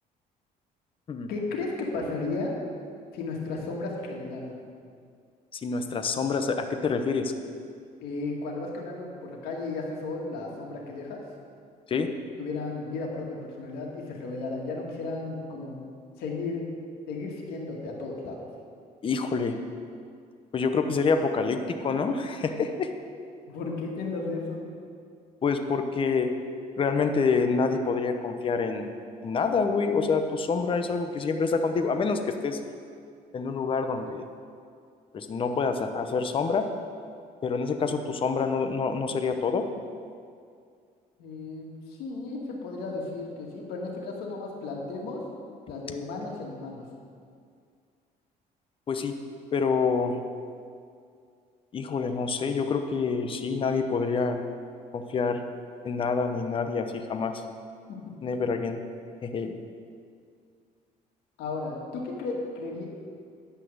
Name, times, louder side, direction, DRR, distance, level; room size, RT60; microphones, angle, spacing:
voice 1, 1.3-2.5 3.1-4.6 8.0-11.2 12.4-15.9 16.2-16.6 17.1-18.5 23.5-24.6 41.2-45.2 45.7-46.8 57.9-58.4 61.4-62.9, left 3 dB, 85° left, -1 dB, 2.1 m, -34 dB
voice 2, 5.5-7.3 11.9-12.1 19.0-19.5 20.5-22.9 25.4-26.3 26.8-28.9 29.2-32.6 33.3-34.2 35.1-36.7 37.4-39.6 48.9-49.1 49.5-50.2 51.7-54.4 54.9-55.4 55.8-57.4 58.2-58.8 59.2-59.5, left 5 dB, 35° left, 6 dB, 0.8 m, -27 dB
10.0 x 5.7 x 8.0 m, 2.2 s
cardioid pair, 115°, 15 cm